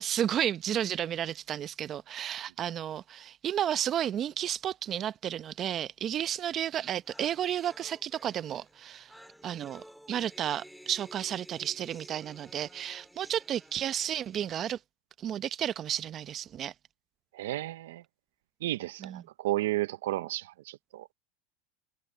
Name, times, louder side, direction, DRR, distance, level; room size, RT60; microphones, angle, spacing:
voice 1, 0.0-9.1 9.4-14.8 15.2-16.7 19.0-19.2, right 10 dB, 35° right, 0.7 m, -32 dB
sound 1, 6.5-6.6 6.8-14.4, equal, ahead, 4.6 m, -54 dB
voice 2, 17.3-18.0 18.6-21.1, right 16 dB, 80° right, 0.7 m, -33 dB
supercardioid pair, 120°, 0 cm